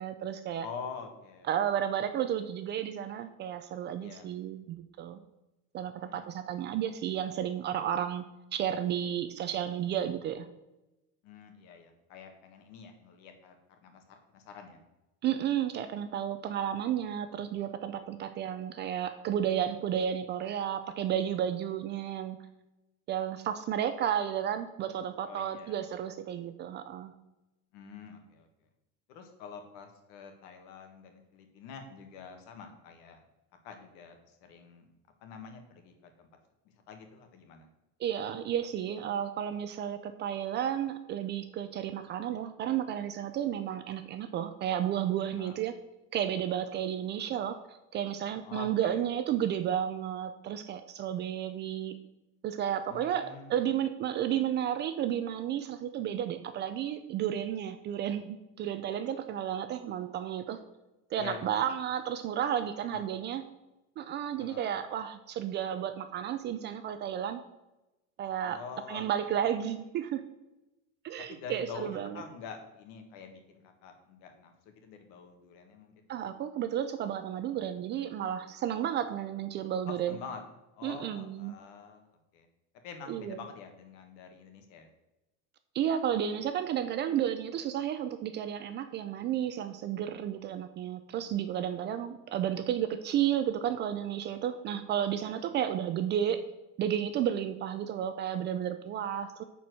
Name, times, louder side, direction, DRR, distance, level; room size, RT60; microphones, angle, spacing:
voice 1, 0.0-0.7 1.5-5.2 5.7-8.2 8.5-10.5 15.2-22.4 23.1-27.1 38.0-45.8 46.1-47.6 47.9-52.0 52.4-60.6 61.1-63.4 64.0-67.4 68.2-68.6 68.9-70.2 71.0-72.2 76.1-80.2 80.8-81.6 83.1-83.4 85.7-96.4 96.8-99.4, right 10 dB, 35° right, 9 dB, 0.4 m, -32 dB
voice 2, 0.6-1.5 4.0-4.3 6.0-6.3 11.2-14.8 25.2-25.8 27.7-28.5 29.1-33.2 33.6-34.9 35.2-36.3 36.9-37.7 45.4-45.6 48.4-49.0 52.9-53.5 61.1-61.4 62.8-63.0 64.4-64.8 68.4-69.3 71.3-75.9 79.8-80.4 80.7-82.1 82.3-82.5 82.8-84.9 91.5-91.9 95.4-95.5, left 6 dB, 80° left, 5 dB, 1.7 m, -46 dB
9.3 x 4.5 x 6.2 m, 0.99 s
cardioid pair, 175°, 34 cm